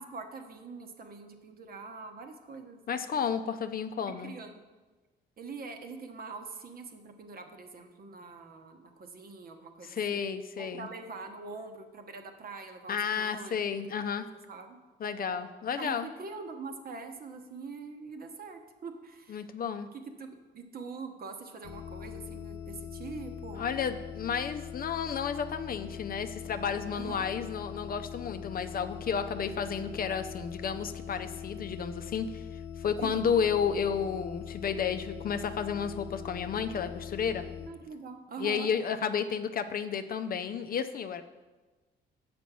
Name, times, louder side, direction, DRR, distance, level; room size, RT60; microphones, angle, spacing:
voice 1, 0.0-3.3 4.0-4.6 5.4-10.3 10.6-13.6 14.0-14.8 15.8-19.5 19.9-23.7 26.9-27.3 33.0-33.2 37.7-38.7, right 4 dB, 50° right, 5 dB, 1.0 m, -44 dB
voice 2, 2.9-4.3 9.8-10.9 12.9-14.3 15.0-16.1 19.3-19.9 23.5-32.4 32.8-37.4 38.4-41.2, left 7 dB, 45° left, 9 dB, 0.5 m, -32 dB
sound 1, 21.6-37.7, left 8 dB, 75° left, 0.8 m, -42 dB
6.9 x 5.1 x 6.1 m, 1.3 s
cardioid pair, 90°, 20 cm